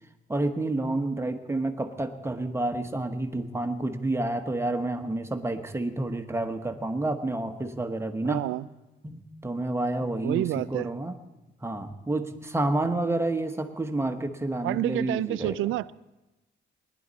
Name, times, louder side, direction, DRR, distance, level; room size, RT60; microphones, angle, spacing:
voice 1, 0.3-8.4 9.0-11.1 11.6-15.5, right 2 dB, 15° right, 6 dB, 1.1 m, -29 dB
voice 2, 8.2-8.7 10.2-10.9 14.6-15.9, right 15 dB, 85° right, 18 dB, 0.4 m, -28 dB
20.0 x 11.0 x 4.1 m, 1.0 s
cardioid pair, 90°, 20 cm